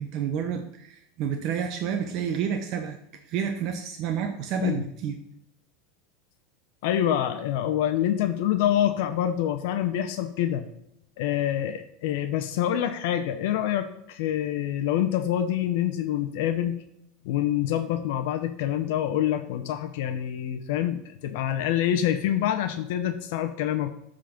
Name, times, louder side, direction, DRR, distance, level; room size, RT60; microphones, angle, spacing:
voice 1, 0.0-3.0 3.3-5.2, right 8 dB, 50° right, 5 dB, 0.8 m, -29 dB
voice 2, 6.8-10.7 11.2-16.8 17.2-23.9, left 11 dB, 70° left, 8 dB, 0.7 m, -26 dB
8.5 x 3.9 x 5.8 m, 0.77 s
supercardioid pair, 125°, 0 cm